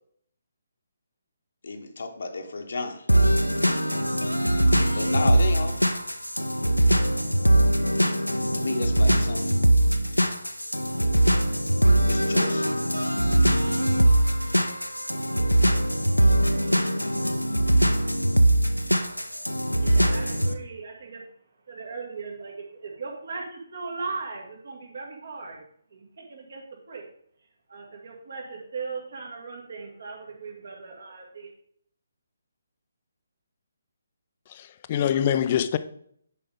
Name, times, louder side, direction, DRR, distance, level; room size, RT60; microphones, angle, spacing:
voice 1, 1.6-3.1 4.7-5.8 8.5-9.5 12.1-12.7 13.7-13.9, left 3 dB, 55° left, 1.0 m, -32 dB
sound 1, 3.1-20.5, right 1 dB, 90° left, 0.7 m, -22 dB
voice 2, 19.3-21.2 21.7-25.6 25.9-27.0 27.7-31.5, right 4 dB, 55° right, 2.1 m, -38 dB
voice 3, 34.5-35.8, left 9 dB, 30° left, 0.5 m, -24 dB
10.0 x 5.4 x 3.6 m
figure-of-eight pair, 140°, 0 cm